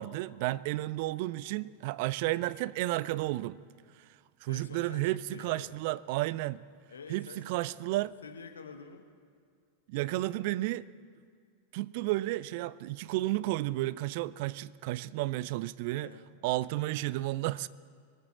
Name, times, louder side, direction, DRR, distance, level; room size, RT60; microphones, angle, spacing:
voice 1, 0.0-3.6 4.4-6.6 7.1-8.1 9.9-10.9 11.7-16.1 16.4-17.7, right 17 dB, 50° right, 0.3 m, -32 dB
voice 2, 4.5-5.8 6.9-7.6 8.2-9.1 15.9-16.6, left 5 dB, 70° left, 1.3 m, -49 dB
22.0 x 7.9 x 7.3 m
figure-of-eight pair, 90°, 0 cm